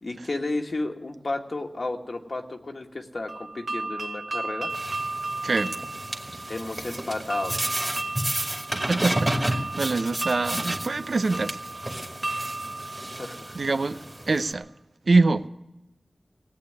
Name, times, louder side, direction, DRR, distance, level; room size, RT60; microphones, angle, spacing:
voice 1, 0.0-4.7 6.5-7.5 13.2-13.6, left 2 dB, 60° left, 1.5 m, -32 dB
sound 1, 3.3-14.1, right 2 dB, 65° right, 1.3 m, -35 dB
sound 2, 4.7-14.5, right 1 dB, 20° right, 2.2 m, -32 dB
voice 2, 5.4-5.7 8.7-11.6 13.5-14.0 14.3-14.6 15.1-15.5, right 3 dB, 80° right, 0.7 m, -24 dB
17.5 x 8.6 x 9.6 m
wide cardioid pair, 70°, 0 cm